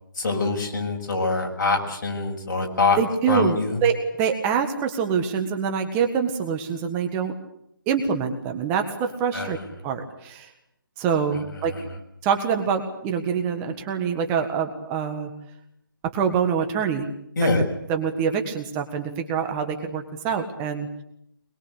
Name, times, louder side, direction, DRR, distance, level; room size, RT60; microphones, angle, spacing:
voice 1, 0.2-3.0 3.3-3.8 9.3-9.6 11.6-12.0 17.4-17.6, left 3 dB, 55° left, 0 dB, 7.0 m, -24 dB
voice 2, 3.0-7.3 7.9-9.6 9.8-10.5 11.0-11.7 12.2-15.3 16.1-17.1 17.9-20.9, right 7 dB, 15° right, 5 dB, 1.6 m, -25 dB
23.0 x 22.0 x 8.3 m, 0.75 s
hypercardioid pair, 160°, 12 cm